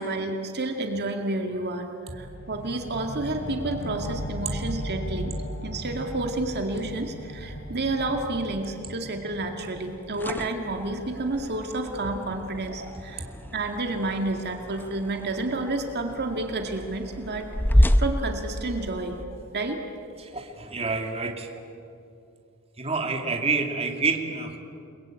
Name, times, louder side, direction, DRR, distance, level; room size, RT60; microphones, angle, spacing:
voice 1, 0.0-5.3 5.6-19.2 19.5-19.8, right 2 dB, 50° right, 3 dB, 2.2 m, -30 dB
sound 1, 2.1-13.2, equal, 65° left, 3.4 m, -37 dB
sound 2, 9.9-19.2, equal, 10° left, 0.8 m, -29 dB
voice 2, 20.2-21.5 22.8-24.6, right 4 dB, 30° right, 3 dB, 2.4 m, -28 dB
29.5 x 21.5 x 9.0 m, 2.5 s
head